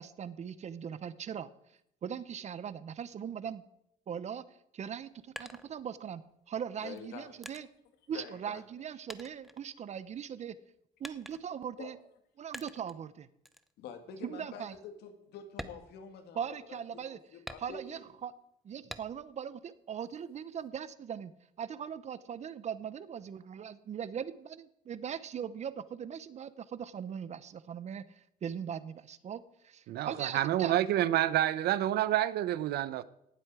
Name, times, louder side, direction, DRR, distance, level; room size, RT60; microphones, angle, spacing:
voice 1, 0.0-1.5 2.0-3.6 4.1-4.4 4.7-7.7 8.1-10.6 11.0-12.0 12.4-13.3 14.2-14.8 16.3-17.2 17.6-18.3 18.6-21.3 21.6-30.7, right 8 dB, 45° right, 0.8 m, -40 dB
sound 1, 4.9-6.3 7.0-8.8 9.1-10.3 11.0-11.7 12.5-13.0 13.5-13.7 14.2-14.3 14.7-14.9 15.5-16.7 17.5-18.1 18.9-19.4 19.8-20.7, equal, ahead, 0.7 m, -48 dB
voice 2, 6.8-7.7 8.1-8.6 11.8-11.9 13.8-18.0, left 6 dB, 80° left, 2.1 m, -47 dB
voice 3, 29.9-33.0, right 13 dB, 70° right, 0.7 m, -28 dB
18.0 x 7.8 x 4.9 m
cardioid pair, 110°, 17 cm